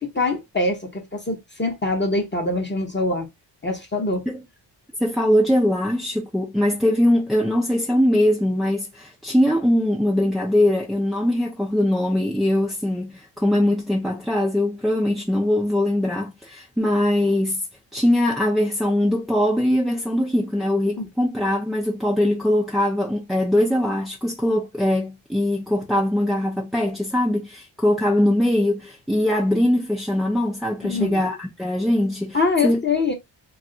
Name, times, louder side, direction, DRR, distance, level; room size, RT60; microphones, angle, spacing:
voice 1, 0.0-3.3 3.6-4.3 21.0-21.1 30.8-31.2 32.3-33.1, left 3 dB, 25° left, 0.7 m, -24 dB
voice 2, 5.0-17.6 17.9-32.4 32.6-32.8, left 1 dB, ahead, 0.3 m, -21 dB
2.4 x 2.3 x 3.7 m
wide cardioid pair, 115°, 45 cm